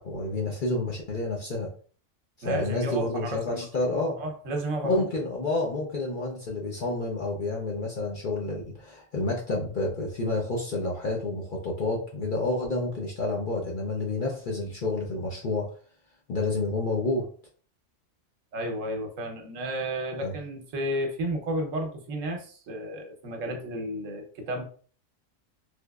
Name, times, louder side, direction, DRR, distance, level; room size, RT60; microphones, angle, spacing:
voice 1, 0.0-1.7 2.4-4.2 4.8-15.7 16.3-17.2 20.2-20.3, left 2 dB, 55° left, -1 dB, 0.6 m, -29 dB
voice 2, 2.4-5.0 18.5-24.6, right 1 dB, 75° right, 4 dB, 1.1 m, -32 dB
3.4 x 3.0 x 2.3 m, 0.43 s
omnidirectional pair, 1.4 m